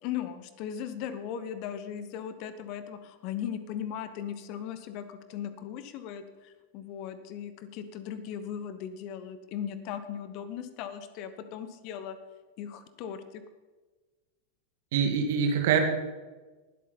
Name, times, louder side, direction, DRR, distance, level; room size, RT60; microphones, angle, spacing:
voice 1, 0.0-12.2 12.6-13.4, left 9 dB, 40° left, 12 dB, 1.0 m, -38 dB
voice 2, 14.9-15.8, right 7 dB, 55° right, 5 dB, 1.9 m, -24 dB
19.5 x 8.3 x 4.2 m, 1.3 s
figure-of-eight pair, 90°, 0 cm